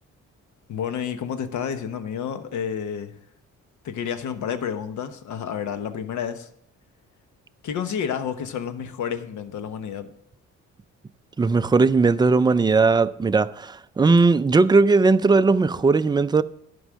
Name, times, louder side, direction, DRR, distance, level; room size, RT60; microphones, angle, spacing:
voice 1, 0.7-3.1 3.8-6.5 7.6-10.1, left 8 dB, 70° left, 1.0 m, -30 dB
voice 2, 11.4-16.4, right 4 dB, 15° right, 0.4 m, -18 dB
11.5 x 5.3 x 6.2 m
cardioid pair, 90°, 30 cm